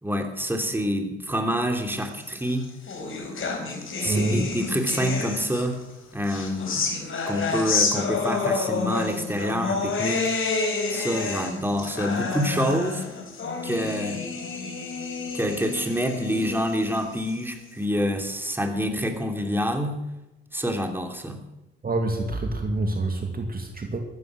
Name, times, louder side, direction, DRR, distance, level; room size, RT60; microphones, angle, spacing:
voice 1, 0.0-2.7 4.0-5.7 6.1-6.9 7.3-10.3 10.9-13.0 13.6-14.2 15.3-20.0 20.5-21.4, equal, 5° right, 4 dB, 3.0 m, -27 dB
sound 1, 2.3-5.8 6.2-17.7, left 4 dB, 45° left, 4.3 m, -29 dB
sound 2, 3.1-9.6, left 5 dB, 65° left, 6.1 m, -49 dB
voice 2, 4.0-4.5 21.8-24.0, right 2 dB, 30° right, 4 dB, 2.4 m, -26 dB
14.5 x 13.5 x 6.2 m, 0.95 s
hypercardioid pair, 60°, 30 cm